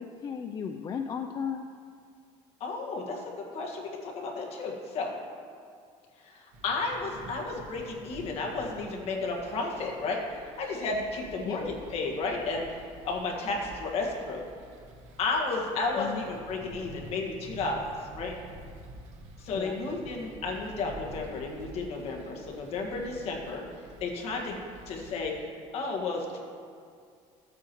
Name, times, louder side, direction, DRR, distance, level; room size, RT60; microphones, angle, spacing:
voice 1, 0.0-1.7 11.4-11.7 16.0-16.2 19.5-19.8, left 7 dB, 30° left, 5 dB, 0.4 m, -35 dB
voice 2, 2.6-3.2 3.5-5.1 6.2-14.4 15.2-18.3 19.4-23.7 24.0-24.6 24.9-26.4, left 3 dB, 50° left, 0 dB, 1.6 m, -33 dB
sound 1, 6.5-25.4, right 2 dB, 70° right, 1.4 m, -49 dB
14.0 x 8.4 x 3.0 m, 2.2 s
cardioid pair, 145°, 13 cm